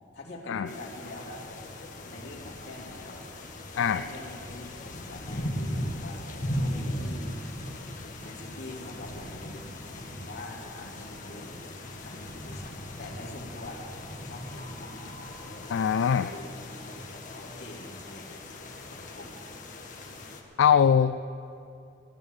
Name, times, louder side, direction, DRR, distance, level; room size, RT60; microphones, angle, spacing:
voice 1, 0.1-1.4 2.0-3.2 3.7-6.2 6.5-7.4 8.2-9.7 9.9-11.7 12.0-13.9 14.1-15.3 16.0-18.4 18.9-19.4, left 1 dB, 60° left, -2 dB, 2.8 m, -44 dB
sound 1, 0.7-20.4, left 1 dB, 45° left, 1.5 m, -38 dB
voice 2, 15.7-16.3 20.6-21.2, left 7 dB, 85° left, 11 dB, 0.3 m, -22 dB
15.5 x 10.5 x 7.2 m, 2.6 s
head